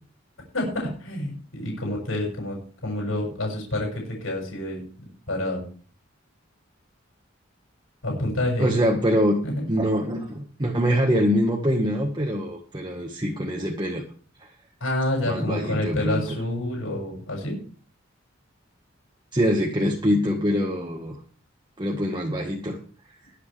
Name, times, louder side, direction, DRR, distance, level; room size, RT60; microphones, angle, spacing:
voice 1, 0.5-5.6 8.0-8.7 9.4-9.5 14.8-17.5, left 1 dB, 85° left, -2 dB, 6.8 m, -28 dB
voice 2, 8.6-9.4 9.7-14.0 14.4-14.5 15.2-16.4 19.3-21.2 21.8-22.8, equal, 25° right, 0 dB, 1.6 m, -24 dB
22.0 x 8.4 x 3.4 m, 0.43 s
head